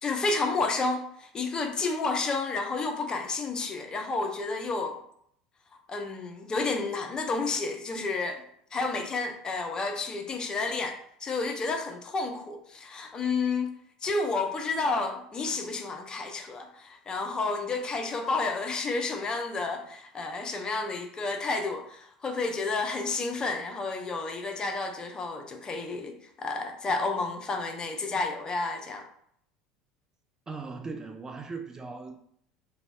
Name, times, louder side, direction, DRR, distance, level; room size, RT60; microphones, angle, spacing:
voice 1, 0.0-5.0 5.9-8.4 8.7-13.7 14.0-29.1, left 3 dB, 30° left, 5 dB, 0.5 m, -31 dB
voice 2, 30.5-32.2, right 4 dB, 20° right, 5 dB, 0.4 m, -38 dB
2.6 x 2.2 x 3.0 m, 0.67 s
hypercardioid pair, 75°, 3 cm